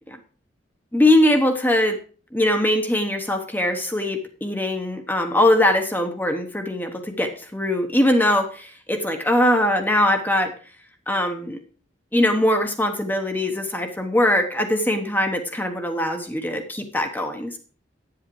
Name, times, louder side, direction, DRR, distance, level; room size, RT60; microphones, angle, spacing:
voice 1, 0.9-2.0 2.3-10.5 11.1-11.6 12.1-17.6, left 1 dB, 10° left, 5 dB, 1.1 m, -21 dB
9.6 x 7.7 x 4.7 m, 0.39 s
head